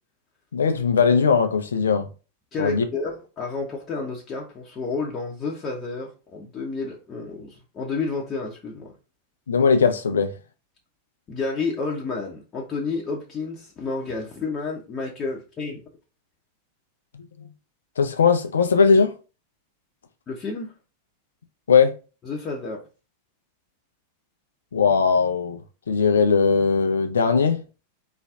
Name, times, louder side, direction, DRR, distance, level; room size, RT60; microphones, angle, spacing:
voice 1, 0.5-2.1 2.6-2.9 9.5-10.3 18.0-19.1 21.7-21.9 24.7-25.6 25.9-27.6, left 5 dB, 70° left, 0.8 m, -19 dB
voice 2, 2.5-8.9 11.3-15.8 20.3-20.7 22.2-22.8, left 4 dB, 25° left, 1.1 m, -30 dB
4.3 x 3.1 x 3.7 m
figure-of-eight pair, 90°, 0 cm